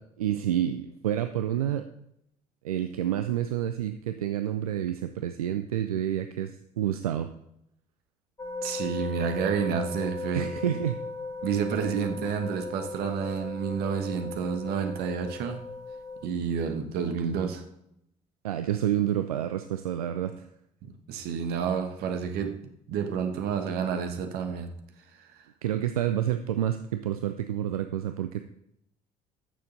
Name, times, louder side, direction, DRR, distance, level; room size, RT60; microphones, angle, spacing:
voice 1, 0.0-1.9 2.6-7.3 10.3-11.0 18.4-20.4 25.6-28.4, right 11 dB, 80° right, 0.4 m, -29 dB
sound 1, 8.4-16.3, left 3 dB, 20° left, 1.7 m, -37 dB
voice 2, 8.6-10.8 11.4-15.6 16.2-17.6 20.9-24.8 25.2-25.3, right 7 dB, 60° right, 1.3 m, -30 dB
13.5 x 6.7 x 3.9 m
figure-of-eight pair, 50°, 18 cm